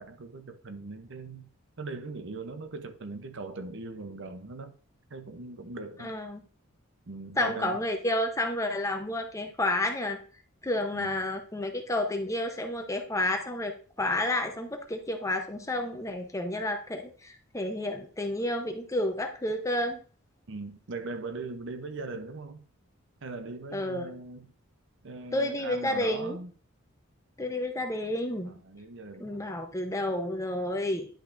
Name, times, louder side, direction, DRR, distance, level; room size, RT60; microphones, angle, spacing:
voice 1, 0.0-1.5 1.8-4.8 5.1-6.1 7.1-7.8 10.9-11.2 20.5-22.6 23.2-24.5 25.0-26.5 28.5-29.6, right 3 dB, 60° right, 0.7 m, -40 dB
voice 2, 6.0-6.4 7.4-10.2 10.6-20.0 23.7-24.1 25.3-26.4 27.4-28.6 29.2-31.1, left 1 dB, 15° left, 0.8 m, -30 dB
10.0 x 5.7 x 2.6 m
head